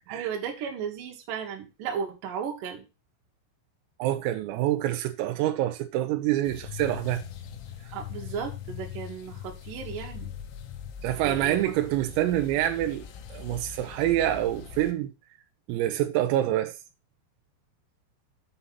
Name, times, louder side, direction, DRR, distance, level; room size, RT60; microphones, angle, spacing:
voice 1, 0.1-2.8 7.9-10.3 11.2-11.6, right 7 dB, 55° right, 2.6 m, -35 dB
voice 2, 4.0-7.2 11.0-15.1 15.7-16.7, right 13 dB, 90° right, 3.6 m, -26 dB
sound 1, 6.4-14.9, left 8 dB, 80° left, 3.9 m, -41 dB
7.9 x 5.7 x 5.7 m
omnidirectional pair, 6.0 m